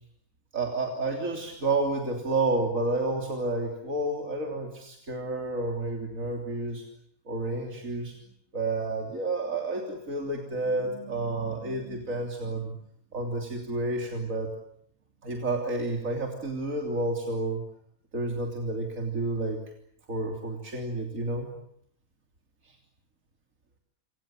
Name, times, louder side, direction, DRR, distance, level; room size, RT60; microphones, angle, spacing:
voice 1, 0.5-6.8 7.3-8.2 8.5-12.7 13.1-14.5 15.2-17.6 18.1-19.6 20.1-21.5 22.7-22.8, right 2 dB, 70° right, 2 dB, 3.7 m, -30 dB
28.5 x 27.5 x 7.5 m, 0.67 s
omnidirectional pair, 1.5 m